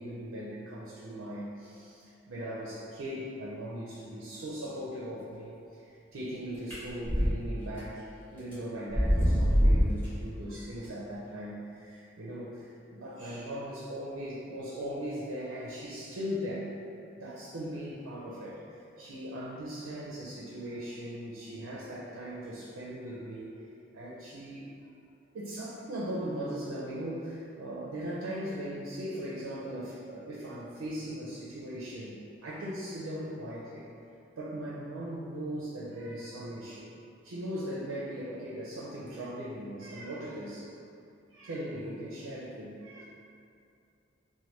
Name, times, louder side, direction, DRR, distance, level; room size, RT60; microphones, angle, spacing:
voice 1, 0.0-16.7 17.2-23.5 23.9-24.7 25.3-32.1 32.4-33.9 34.4-36.9 37.2-40.7 41.3-43.0, equal, 85° right, -6 dB, 0.5 m, -39 dB
sound 1, 6.7-7.3 7.8-7.9 8.5-8.6 8.9-10.0, equal, 10° left, 1.0 m, -23 dB
3.0 x 2.2 x 3.1 m, 2.5 s
head